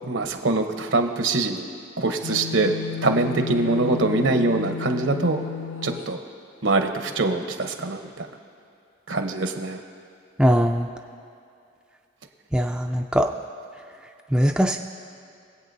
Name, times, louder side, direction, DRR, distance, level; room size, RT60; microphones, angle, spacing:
voice 1, 0.0-1.7 2.0-2.7 3.0-5.4 5.8-6.2 6.6-8.3 9.1-9.8, right 2 dB, 75° right, 5 dB, 0.9 m, -23 dB
sound 1, 2.2-6.1, left 6 dB, 80° left, 0.5 m, -33 dB
voice 2, 10.4-10.9 12.5-13.3 14.3-14.8, equal, 5° right, 2 dB, 0.3 m, -20 dB
23.0 x 8.3 x 2.7 m, 2.6 s
head